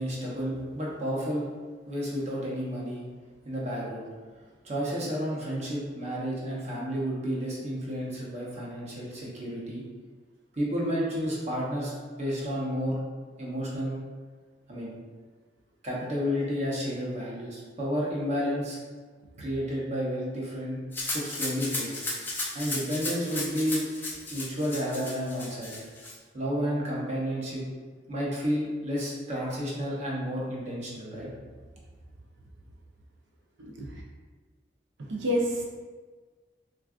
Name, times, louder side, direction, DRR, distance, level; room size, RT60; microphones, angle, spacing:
voice 1, 0.0-1.5 1.9-3.1 3.4-4.0 4.6-9.8 10.5-13.0 13.4-14.0 14.7-14.9 15.8-18.8 19.4-20.8 21.1-21.9 22.5-23.9 24.3-25.9 26.3-27.6 28.1-31.3, equal, 40° right, -4 dB, 0.7 m, -31 dB
Rattle (instrument), 20.9-26.1, left 2 dB, 10° left, 0.4 m, -35 dB
voice 2, 35.0-35.6, equal, 80° right, -1 dB, 0.5 m, -28 dB
3.5 x 2.3 x 2.3 m, 1.4 s
head